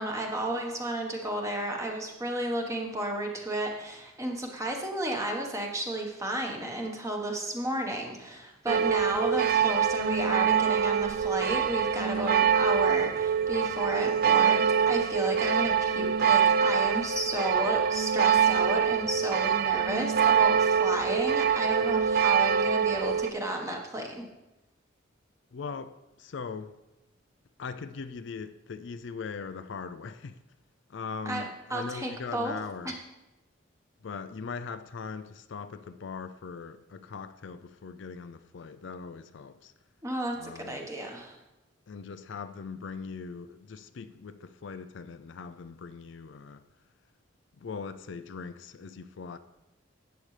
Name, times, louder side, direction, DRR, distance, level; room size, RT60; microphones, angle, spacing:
voice 1, 0.0-24.2 31.2-32.5 32.8-32.9 40.0-41.4, right 1 dB, 15° right, 1.2 m, -32 dB
sound 1, 8.7-23.3, right 7 dB, 50° right, 0.3 m, -25 dB
voice 2, 25.5-26.8 27.6-30.4 30.9-32.9 34.0-39.7 40.4-40.9 41.9-46.7 47.6-49.4, left 5 dB, 65° left, 0.4 m, -40 dB
12.5 x 8.9 x 3.3 m
head